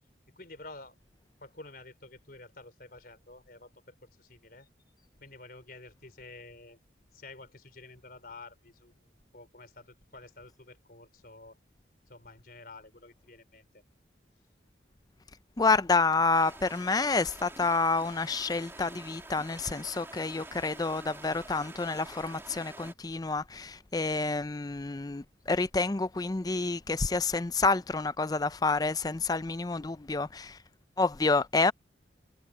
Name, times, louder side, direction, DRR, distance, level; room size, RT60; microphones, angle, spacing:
voice 1, 0.4-0.9 1.4-4.7 5.2-6.8 7.1-9.1 9.3-11.6 12.1-13.8, left 2 dB, 50° left, 4.5 m, -50 dB
voice 2, 15.6-30.6 31.0-31.7, left 3 dB, 20° left, 0.4 m, -28 dB
sound 1, 16.3-22.9, right 2 dB, 15° right, 3.1 m, -48 dB
head